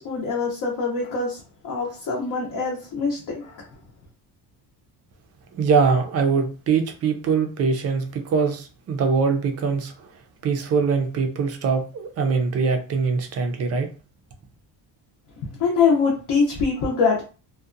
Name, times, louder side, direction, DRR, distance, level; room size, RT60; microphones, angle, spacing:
voice 1, 0.0-3.6 15.6-17.2, left 5 dB, 50° left, 0.6 m, -23 dB
voice 2, 5.5-10.1 10.4-13.9, right 5 dB, 35° right, 0.4 m, -22 dB
2.7 x 2.1 x 2.4 m
cardioid pair, 170°, 43 cm